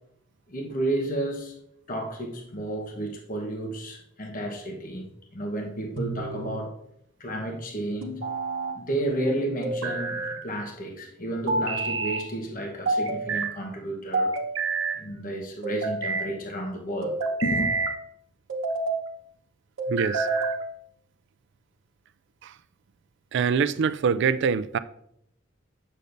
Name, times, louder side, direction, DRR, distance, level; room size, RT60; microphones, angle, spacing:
voice 1, 0.5-1.5 1.9-5.1 5.3-6.7 7.2-8.2 8.7-14.3 14.9-17.1 17.4-17.7, right 1 dB, 45° left, 1.1 m, -31 dB
sound 1, 6.0-6.6 8.0-8.8 9.6-10.4 11.5-12.3 12.9-13.5 14.1-15.0 15.6-16.3 17.0-18.0 18.5-19.0 19.8-20.6, right 3 dB, 80° right, 0.9 m, -28 dB
voice 2, 19.9-20.3 22.4-22.5 23.3-24.8, right 6 dB, 60° right, 0.3 m, -24 dB
8.4 x 6.5 x 2.6 m
head